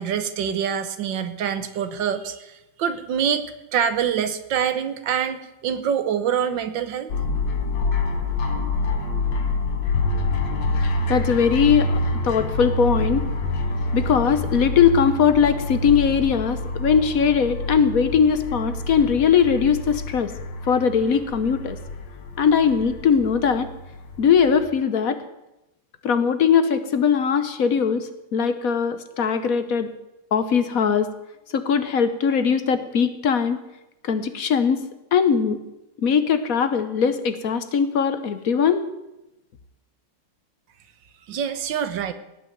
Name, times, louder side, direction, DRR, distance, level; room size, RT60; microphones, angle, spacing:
voice 1, 0.0-7.1 41.3-42.1, right 8 dB, 75° right, 11 dB, 1.7 m, -25 dB
sound 1, 7.1-24.6, left 2 dB, 70° left, 2.2 m, -27 dB
voice 2, 10.8-11.9 12.2-13.3 13.9-20.3 20.7-21.8 22.4-23.7 24.2-25.2 26.0-29.9 30.3-31.1 31.5-33.6 34.0-34.8 35.1-35.6 36.0-38.8, left 7 dB, 55° left, 10 dB, 1.2 m, -20 dB
18.0 x 6.1 x 9.1 m, 0.94 s
omnidirectional pair, 2.1 m